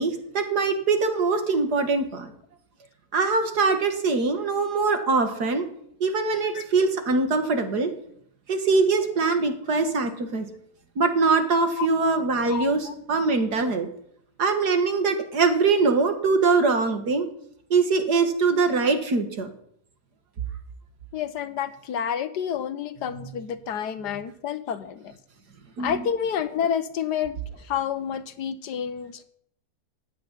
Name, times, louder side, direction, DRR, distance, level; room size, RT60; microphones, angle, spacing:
voice 1, 0.0-2.3 3.1-5.7 6.0-7.9 8.5-10.5 11.0-13.9 14.4-17.3 17.7-19.5 25.8-26.0, right 4 dB, 80° right, 7 dB, 2.5 m, -23 dB
voice 2, 4.8-5.1 6.5-6.6 11.8-11.9 12.4-12.9 21.1-25.1 25.8-29.2, left 8 dB, 85° left, 11 dB, 1.5 m, -29 dB
16.0 x 8.0 x 10.0 m, 0.68 s
omnidirectional pair, 1.7 m